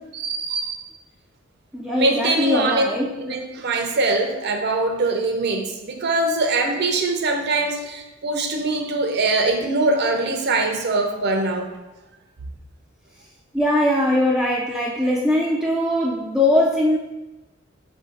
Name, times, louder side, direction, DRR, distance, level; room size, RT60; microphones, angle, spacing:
voice 1, 0.1-0.8 1.9-2.8 3.2-11.7, right 2 dB, 55° right, 3 dB, 0.6 m, -22 dB
voice 2, 1.7-3.4 13.5-17.0, left 1 dB, 5° right, -4 dB, 0.4 m, -21 dB
4.8 x 2.7 x 3.8 m, 1.1 s
head